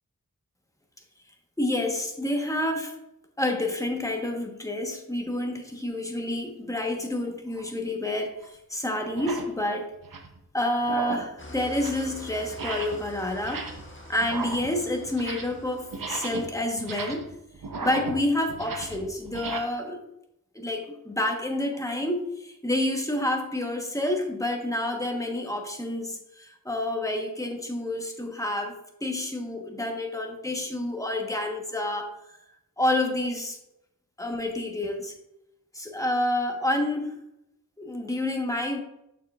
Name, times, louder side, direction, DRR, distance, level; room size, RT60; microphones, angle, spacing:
voice 1, 1.6-2.9 3.4-9.9 10.5-13.7 14.1-17.3 17.8-20.0 20.5-28.7 29.0-32.1 32.8-33.6 34.2-35.1 35.7-37.1 37.8-38.8, left 1 dB, 10° left, 3 dB, 1.1 m, -29 dB
sound 1, 7.5-7.7 8.4-8.5 9.1-9.5 9.9-10.4 10.8-11.3 11.6-12.1 12.5-13.1 13.3-13.9 14.2-15.6 15.9-19.6, right 4 dB, 70° right, 0.8 m, -36 dB
Engine starting / Idling, 11.4-16.8, left 1 dB, 35° left, 1.3 m, -45 dB
6.7 x 6.4 x 2.4 m, 0.86 s
wide cardioid pair, 45°, 35 cm